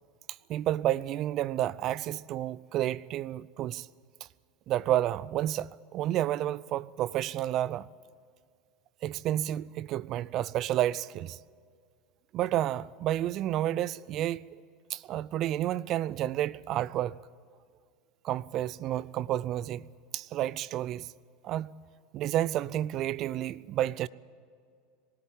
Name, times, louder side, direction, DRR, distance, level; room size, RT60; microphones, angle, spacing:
voice 1, 0.5-3.9 4.7-7.9 9.0-11.4 12.3-14.4 14.9-17.2 18.2-19.9 20.1-21.1 21.4-21.8 22.1-24.1, right 13 dB, 50° right, 0.5 m, -30 dB
20.0 x 13.5 x 9.9 m
hypercardioid pair, 85°, 0 cm